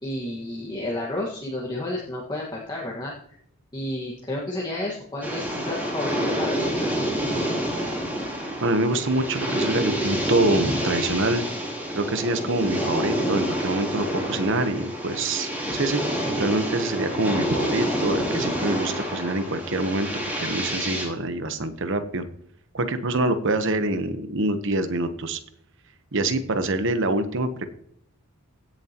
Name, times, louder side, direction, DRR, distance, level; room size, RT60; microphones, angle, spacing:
voice 1, 0.0-3.4 3.7-6.9, left 1 dB, 20° left, -4 dB, 1.6 m, -31 dB
sound 1, 5.2-21.0, equal, 10° right, 3.2 m, -28 dB
voice 2, 8.6-11.4 11.9-16.0 16.4-20.1 20.4-22.2 22.7-25.4 26.1-27.7, right 2 dB, 55° right, 9 dB, 1.0 m, -25 dB
16.5 x 7.4 x 3.0 m, 0.67 s
head